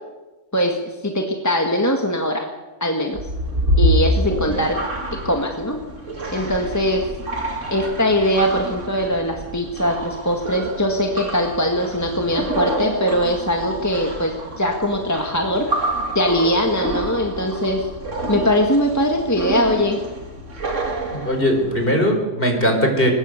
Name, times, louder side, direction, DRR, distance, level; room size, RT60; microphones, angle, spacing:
voice 1, 1.0-2.5 2.8-3.2 3.8-4.8 5.1-5.8 6.3-7.0 7.7-15.7 16.1-17.9 18.3-20.0, equal, 10° left, 2 dB, 1.9 m, -21 dB
sound 1, 3.1-21.8, right 1 dB, 55° right, 3.1 m, -27 dB
voice 2, 21.1-23.1, equal, 40° left, 3 dB, 4.9 m, -19 dB
23.5 x 20.5 x 6.8 m, 1.2 s
omnidirectional pair, 1.5 m